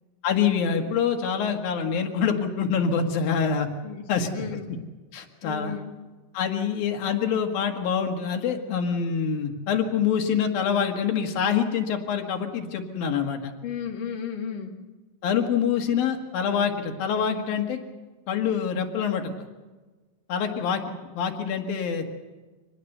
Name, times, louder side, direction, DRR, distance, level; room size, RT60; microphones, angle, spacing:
voice 1, 0.2-3.7 4.1-4.3 5.1-5.8 6.3-13.5 15.2-17.8 18.3-19.3 20.3-20.8 21.1-22.1, left 7 dB, 90° left, 4 dB, 3.7 m, -25 dB
voice 2, 4.3-4.7 5.4-5.9 13.6-14.8, left 7 dB, 40° left, 2 dB, 2.5 m, -34 dB
25.5 x 19.5 x 6.8 m, 1.3 s
omnidirectional pair, 4.0 m